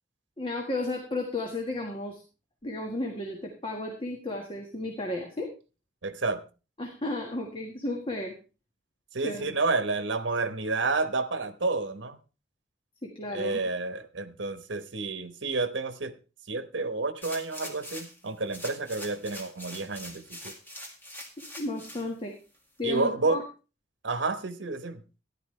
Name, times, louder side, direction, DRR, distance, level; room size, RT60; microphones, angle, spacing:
voice 1, 0.4-2.2 2.6-5.5 6.8-8.3 9.2-9.5 13.0-13.6 21.6-22.3 22.8-23.4, left 2 dB, 30° left, 1 dB, 1.6 m, -33 dB
voice 2, 6.0-6.4 9.1-12.2 13.3-16.1 16.5-20.5 22.8-23.4 24.0-25.0, right 3 dB, 80° right, 11 dB, 1.1 m, -30 dB
sound 1, 17.2-18.2 18.5-22.0 22.5-22.6, left 1 dB, 10° left, 2.1 m, -43 dB
13.5 x 11.0 x 3.3 m, 0.32 s
head